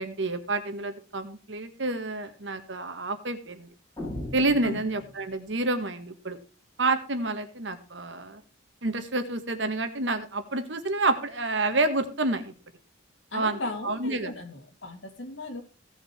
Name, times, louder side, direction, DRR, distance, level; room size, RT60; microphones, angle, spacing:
voice 1, 0.0-3.7 4.3-6.4 6.8-8.4 8.8-12.5 13.3-14.3, right 2 dB, 70° right, 9 dB, 1.7 m, -29 dB
sound 1, 4.0-5.6, left 1 dB, 25° left, 5.3 m, -38 dB
voice 2, 13.3-15.6, left 2 dB, 85° left, 5 dB, 2.4 m, -36 dB
16.5 x 6.5 x 4.5 m, 0.34 s
head